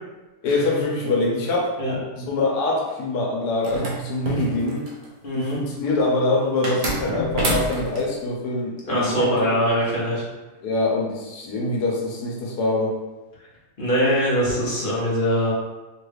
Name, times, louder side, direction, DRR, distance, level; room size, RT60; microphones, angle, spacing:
voice 1, 0.4-1.7 2.2-4.8 5.3-9.3 10.6-13.0, left 2 dB, 80° left, -2 dB, 1.2 m, -24 dB
sound 1, 3.6-5.1 6.6-8.0, right 1 dB, 60° right, 0.5 m, -27 dB
voice 2, 5.2-5.6 8.9-10.2 13.8-15.5, equal, 45° left, -6 dB, 0.8 m, -22 dB
3.2 x 2.3 x 3.2 m, 1.1 s
omnidirectional pair, 1.7 m